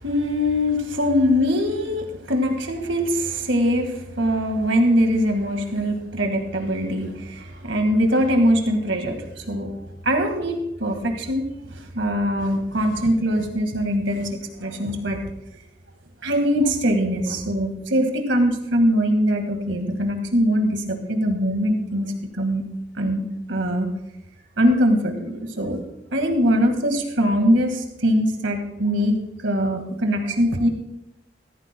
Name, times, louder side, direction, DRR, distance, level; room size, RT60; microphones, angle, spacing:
voice 1, 0.0-9.7 10.0-15.2 16.2-22.1 22.3-22.6 23.0-23.2 23.5-23.9 24.6-25.8 26.1-29.2 29.4-30.7, equal, 90° right, 4 dB, 1.9 m, -22 dB
15.5 x 14.0 x 2.3 m, 0.85 s
head